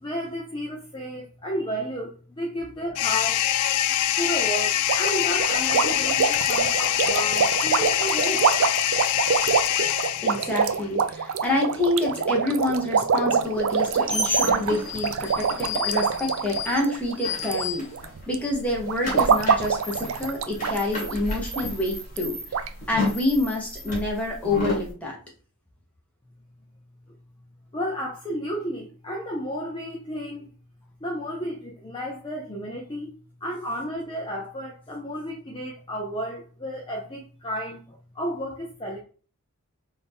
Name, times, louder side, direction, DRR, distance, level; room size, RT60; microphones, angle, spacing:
voice 1, 0.0-3.6 4.2-8.5 9.4-9.5 27.7-30.5 31.0-33.1 33.4-39.0, equal, 20° left, 0.6 m, -32 dB
sound 1, 2.9-10.7, left 12 dB, 85° left, 0.3 m, -24 dB
sound 2, 4.9-17.6 17.9-18.3 18.9-20.8 21.1-21.2 21.5-21.6 22.2-22.3 22.5-22.7, right 6 dB, 65° right, 0.4 m, -25 dB
voice 2, 10.2-17.8 18.3-22.6 22.9-25.2, left 2 dB, 5° left, 1.1 m, -27 dB
sound 3, 13.6-18.2 18.5-24.9, left 2 dB, 35° left, 2.1 m, -32 dB
3.9 x 2.6 x 3.5 m
head